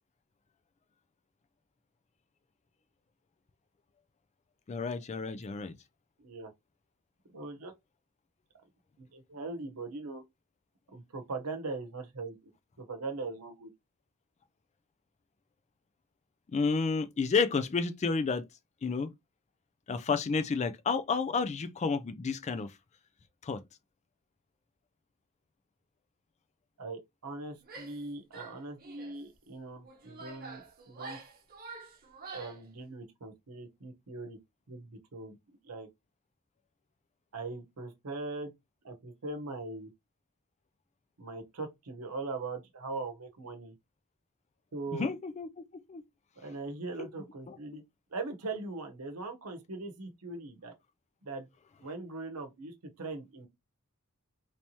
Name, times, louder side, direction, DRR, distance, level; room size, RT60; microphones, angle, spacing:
voice 1, 4.7-5.7 16.5-18.4 18.8-19.1 19.9-22.7 23.4-23.6 44.9-45.5 45.9-46.0 47.0-47.1 47.5-47.6, left 4 dB, 30° left, 0.3 m, -30 dB
voice 2, 6.2-6.5 7.3-7.7 9.0-10.2 10.9-12.5 12.8-13.7 26.8-31.2 32.3-34.4 34.7-35.4 35.6-35.9 37.3-38.5 38.8-39.9 41.2-43.7 44.7-45.1 46.4-47.8 48.1-50.7 51.2-51.5 51.8-53.5, right 3 dB, 85° right, 0.9 m, -40 dB
Female speech woman speaking / Yell, 27.6-28.0 28.3-29.2 29.8-32.6, right 3 dB, 40° right, 0.8 m, -47 dB
3.2 x 3.0 x 2.7 m
head